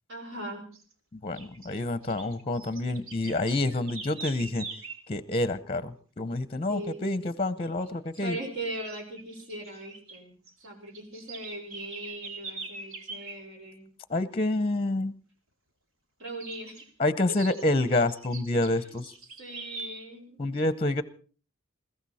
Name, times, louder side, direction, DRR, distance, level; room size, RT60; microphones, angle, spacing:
voice 1, 0.1-0.7 6.7-7.2 8.2-10.4 10.6-13.8 16.2-16.9 18.5-18.9 19.4-20.4, right 1 dB, 60° right, 5.1 m, -39 dB
sound 1, 0.7-0.9 1.3-5.1 7.6-7.9 8.1-8.3 8.7-10.2 10.4-13.4 16.4-16.9 17.3-19.9, right 4 dB, 80° right, 2.5 m, -43 dB
voice 2, 1.1-4.7 5.1-8.4 14.1-15.1 17.0-19.1 20.4-21.0, left 2 dB, 25° left, 0.8 m, -28 dB
21.0 x 15.5 x 4.2 m
head